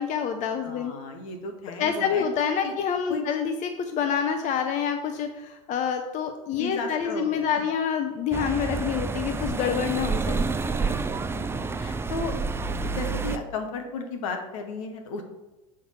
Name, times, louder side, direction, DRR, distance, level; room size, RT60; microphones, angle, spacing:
voice 1, 0.0-0.9 1.8-10.5, left 7 dB, 45° left, 6 dB, 0.7 m, -27 dB
voice 2, 0.6-2.2 2.6-2.7 3.1-3.3 6.5-7.6 9.8-9.9 10.7-12.4 12.8-15.2, left 4 dB, 75° left, 5 dB, 1.3 m, -35 dB
sound 1, 8.3-13.4, right 4 dB, 15° right, 0.4 m, -29 dB
7.0 x 3.9 x 5.8 m, 1.1 s
hypercardioid pair, 85°, 17 cm